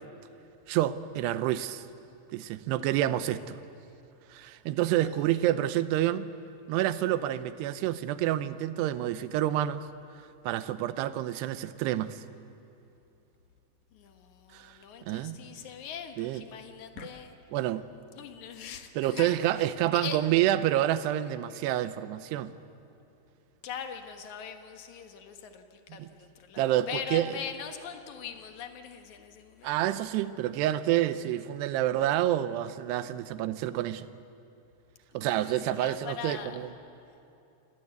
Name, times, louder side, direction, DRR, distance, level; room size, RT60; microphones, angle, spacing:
voice 1, 0.7-1.8 2.3-3.6 4.3-6.3 6.7-9.9 10.4-12.2 14.5-14.8 15.1-15.4 16.2-16.4 17.5-17.8 19.0-22.5 26.0-26.1 26.6-27.3 29.6-34.1 35.1-36.7, right 13 dB, 90° right, 13 dB, 2.9 m, -28 dB
voice 2, 13.9-17.3 18.1-20.2 23.6-29.8 35.1-36.6, left 7 dB, 60° left, 6 dB, 2.3 m, -41 dB
29.5 x 18.5 x 8.1 m, 2.7 s
omnidirectional pair, 4.7 m